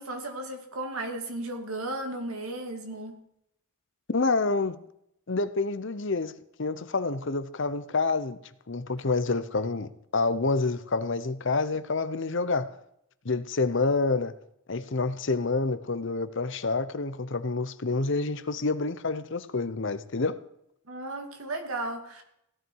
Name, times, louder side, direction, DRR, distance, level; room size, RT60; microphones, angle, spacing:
voice 1, 0.0-3.1 20.9-22.2, right 2 dB, 80° right, 2.5 m, -35 dB
voice 2, 4.1-4.8 5.3-6.3 6.6-8.4 8.7-12.7 13.2-14.3 14.7-20.4, left 3 dB, 55° left, 0.8 m, -28 dB
16.5 x 12.5 x 4.7 m
head